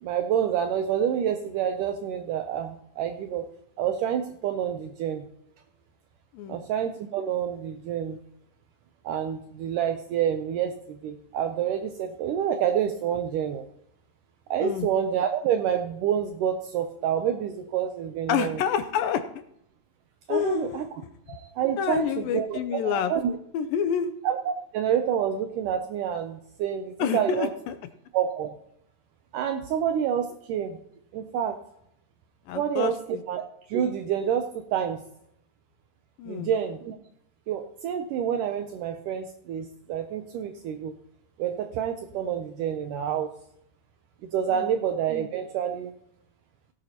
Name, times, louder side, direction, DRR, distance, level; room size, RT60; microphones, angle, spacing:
voice 1, 0.0-3.5 3.8-5.3 6.5-8.2 9.0-13.7 14.5-18.6 20.3-20.9 21.3-23.4 24.2-27.5 28.1-28.5 29.3-30.8 31.1-31.6 32.5-33.4 33.7-35.0 36.3-37.0 37.5-40.9 41.4-43.3 44.2-45.9, right 9 dB, 80° right, 7 dB, 1.9 m, -28 dB
voice 2, 18.3-19.2 20.3-20.9 21.8-23.1 23.5-24.1 27.0-27.8 32.5-32.9 36.2-36.5 44.5-44.7, left 8 dB, 80° left, 9 dB, 2.2 m, -28 dB
17.0 x 11.5 x 2.9 m, 0.75 s
omnidirectional pair, 4.4 m